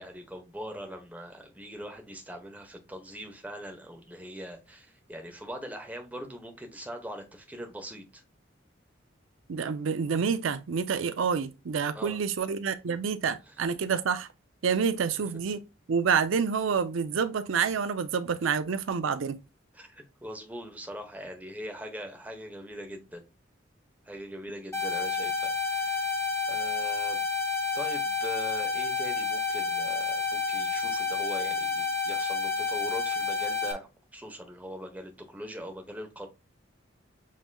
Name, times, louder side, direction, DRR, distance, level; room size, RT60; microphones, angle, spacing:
voice 1, 0.0-8.2 11.9-12.2 13.5-13.6 19.7-23.2 24.1-26.1 26.5-27.2 27.7-36.3, equal, 10° right, 1.0 m, -41 dB
voice 2, 9.5-14.3 14.6-15.6 15.9-19.4, right 6 dB, 85° right, 0.5 m, -28 dB
sound 1, 24.7-33.7, left 5 dB, 15° left, 1.2 m, -30 dB
7.4 x 3.0 x 2.2 m
head